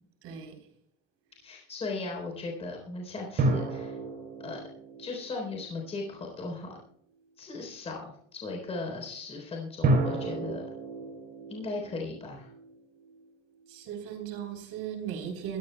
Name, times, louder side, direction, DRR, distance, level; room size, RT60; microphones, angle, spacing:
voice 1, 0.2-0.6 13.7-15.6, right 8 dB, 50° right, 5 dB, 3.8 m, -37 dB
voice 2, 1.4-4.0 4.4-4.6 5.0-6.8 7.4-10.6 11.5-12.5, left 3 dB, 20° left, 0 dB, 3.8 m, -37 dB
sound 1, 3.4-6.2 9.8-13.2, right 2 dB, 30° right, 3.6 m, -31 dB
21.5 x 15.0 x 2.3 m, 0.68 s
cardioid pair, 175°, 30 cm